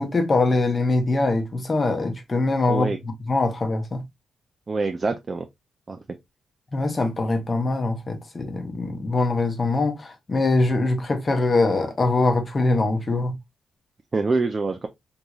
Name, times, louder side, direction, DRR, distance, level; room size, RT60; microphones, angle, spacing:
voice 1, 0.0-4.0 6.7-13.3, left 2 dB, 30° left, 0.8 m, -23 dB
voice 2, 2.7-3.0 4.7-5.5 5.9-6.0 14.1-14.9, right 3 dB, 30° right, 0.4 m, -25 dB
3.8 x 3.0 x 2.3 m
wide cardioid pair, 140°, 0 cm